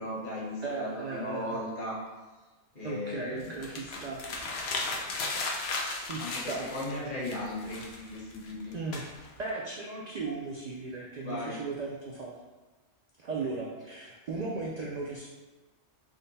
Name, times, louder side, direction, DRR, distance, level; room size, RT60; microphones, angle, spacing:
voice 1, 0.0-2.0 2.7-3.5 6.2-8.7 11.2-11.5, left 1 dB, 45° left, -6 dB, 1.2 m, -37 dB
voice 2, 0.6-1.6 2.8-4.3 5.9-6.7 8.7-9.1 9.4-12.3 13.2-15.3, right 3 dB, 70° right, -3 dB, 0.4 m, -36 dB
sound 1, 3.4-7.0 7.2-9.5, left 3 dB, 65° left, 0.8 m, -35 dB
3.6 x 2.2 x 3.9 m, 1.2 s
omnidirectional pair, 1.2 m